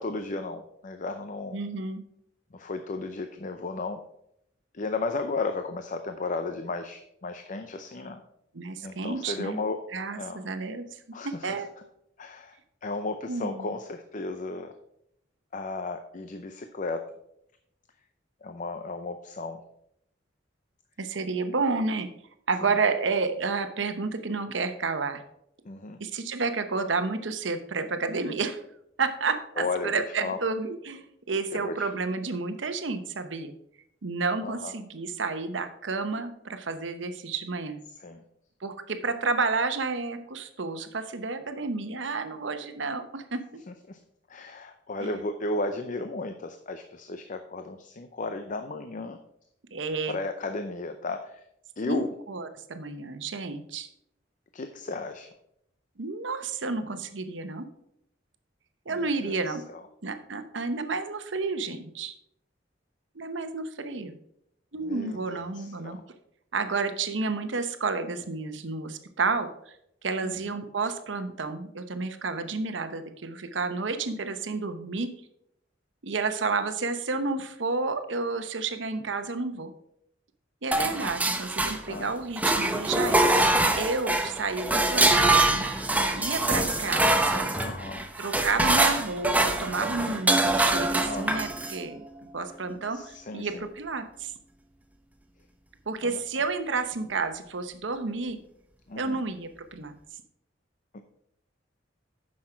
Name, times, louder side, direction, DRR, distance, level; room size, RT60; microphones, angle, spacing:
voice 1, 0.0-1.6 2.5-4.0 4.7-8.2 8.8-9.8 10.2-10.4 11.1-11.5 12.2-14.7 15.5-17.0 18.4-19.6 25.7-26.0 29.6-30.4 31.5-31.9 34.4-34.7 37.9-38.2 43.7-44.0 44.3-49.2 50.1-51.4 51.8-52.1 54.5-55.3 58.9-59.8 64.8-66.0 70.2-70.5 81.9-82.2 87.5-88.1 91.0-91.3 92.9-93.7 96.0-96.2 98.9-99.2 100.9-101.0, left 3 dB, 45° left, 7 dB, 0.6 m, -34 dB
voice 2, 1.5-2.0 8.5-9.6 9.9-10.8 11.2-11.7 13.3-13.7 21.0-22.1 22.5-25.2 26.0-28.6 29.0-33.5 34.0-37.8 38.6-43.4 45.0-45.2 49.7-50.2 51.8-53.9 56.0-57.7 58.9-59.6 60.0-62.1 63.1-64.2 64.7-66.0 66.5-69.7 70.0-75.1 76.0-79.7 80.6-85.7 86.1-87.5 88.2-92.0 92.3-94.3 95.9-98.4 99.0-99.9, right 4 dB, 80° right, 8 dB, 0.9 m, -31 dB
sound 1, 80.7-82.0 82.4-91.8, right 2 dB, 10° right, 0.7 m, -24 dB
9.7 x 6.4 x 4.5 m, 0.76 s
head